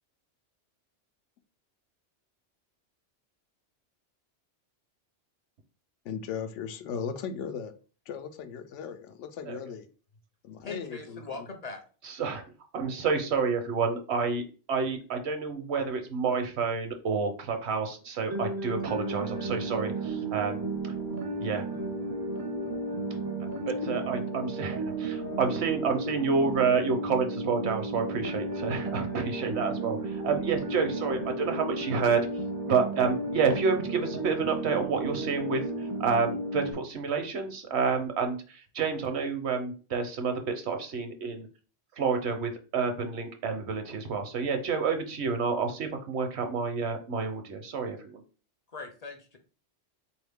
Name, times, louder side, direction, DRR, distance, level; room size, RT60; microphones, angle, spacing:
voice 1, 6.0-7.7 8.1-9.9 10.4-11.5 23.8-24.0, left 7 dB, 90° left, 0.9 m, -37 dB
voice 2, 10.6-11.8 48.7-49.4, left 3 dB, 45° left, 0.6 m, -40 dB
voice 3, 12.0-12.4 12.7-20.7 21.4-21.6 23.7-32.3 32.7-41.5 42.0-48.2, right 5 dB, 70° right, 1.0 m, -29 dB
sound 1, 18.3-36.7, right 2 dB, 35° right, 0.4 m, -33 dB
3.9 x 2.7 x 3.4 m
omnidirectional pair, 1.2 m